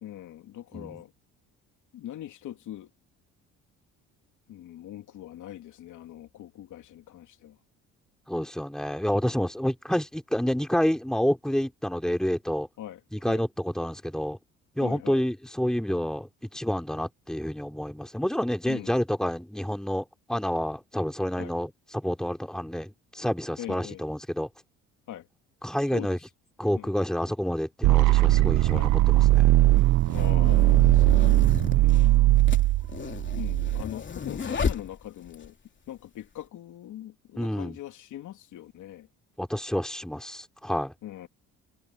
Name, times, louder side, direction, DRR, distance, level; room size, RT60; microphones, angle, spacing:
voice 1, 0.0-1.1 1.9-2.9 4.5-7.6 12.8-13.0 13.3-13.4 14.8-15.2 18.7-18.9 21.4-21.5 23.6-24.0 25.1-25.3 25.9-26.2 26.7-26.9 28.7-28.9 30.1-32.4 33.3-35.6 35.9-39.1 41.0-41.3, left 12 dB, 70° left, 3.0 m, -41 dB
voice 2, 8.3-12.7 13.1-14.4 14.7-24.5 25.6-26.2 26.6-29.5 37.4-37.8 39.4-40.9, equal, ahead, 3.2 m, -29 dB
sound 1, 27.8-33.8, right 17 dB, 70° right, 0.6 m, -20 dB
sound 2, 28.0-28.1 29.1-35.5, left 5 dB, 35° left, 3.3 m, -34 dB
supercardioid pair, 80°, 31 cm